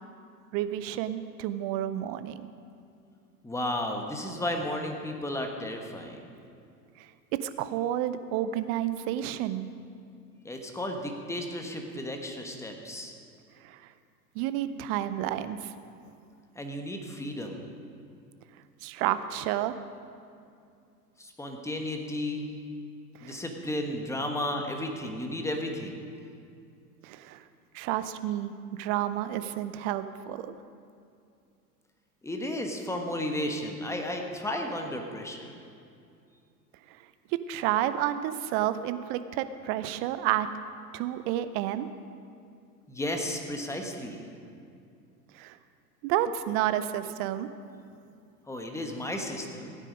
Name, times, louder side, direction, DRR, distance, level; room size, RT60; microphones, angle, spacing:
voice 1, 0.5-2.5 7.0-7.1 7.4-9.7 13.6-13.8 14.4-15.7 18.8-19.7 23.2-23.4 27.0-27.4 27.7-30.5 37.3-40.5 40.9-41.9 45.3-45.6 46.0-47.5, right 12 dB, 30° right, 12 dB, 0.5 m, -30 dB
voice 2, 3.4-6.2 10.4-13.1 16.5-17.7 21.2-22.5 23.2-26.0 32.2-35.5 42.9-44.3 48.5-49.8, left 1 dB, 5° left, 3 dB, 1.3 m, -33 dB
16.0 x 9.1 x 5.2 m, 2.4 s
figure-of-eight pair, 95°, 47 cm